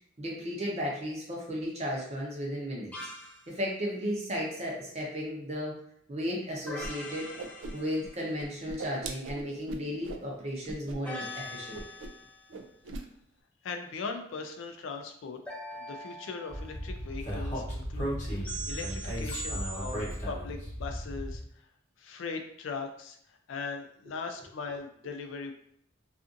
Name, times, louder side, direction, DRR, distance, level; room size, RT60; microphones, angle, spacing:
voice 1, 0.2-2.9 3.5-5.8 6.1-7.3 7.7-11.8, equal, 35° right, -3 dB, 0.7 m, -34 dB
sound 1, 2.9-3.5 6.7-8.4 11.0-12.5 15.5-16.9 18.4-20.2, equal, 5° left, 0.4 m, -42 dB
Whoosh swoosh swish, 6.8-6.9 7.2-8.1 8.4-10.2 10.6-11.0 11.2-11.4 11.7-12.2 12.5-13.0, right 3 dB, 75° right, 0.3 m, -40 dB
voice 2, 13.6-15.4 15.7-21.7 22.0-25.5, left 4 dB, 80° left, 5 dB, 0.4 m, -39 dB
Speech, 16.5-21.4, equal, 40° left, 0.9 m, -35 dB
2.5 x 2.5 x 2.5 m, 0.67 s
head